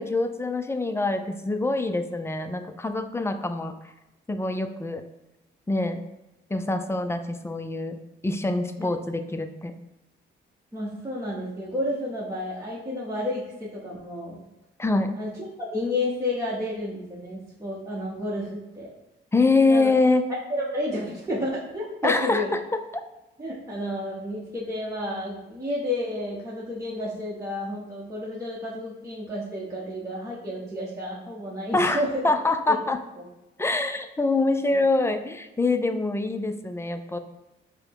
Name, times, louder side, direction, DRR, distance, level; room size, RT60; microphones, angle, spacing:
voice 1, 0.0-3.7 4.3-5.0 5.7-6.0 6.5-8.0 8.2-9.7 14.8-15.1 19.3-20.3 22.0-22.8 31.7-33.0 33.6-37.2, left 3 dB, 15° left, 7 dB, 0.4 m, -25 dB
voice 2, 10.7-14.4 15.1-15.3 15.6-18.9 19.7-19.9 20.5-22.5 23.4-32.1 33.2-33.3, left 1 dB, 15° right, -6 dB, 0.9 m, -31 dB
4.9 x 2.1 x 4.6 m, 0.97 s
cardioid pair, 90°, 20 cm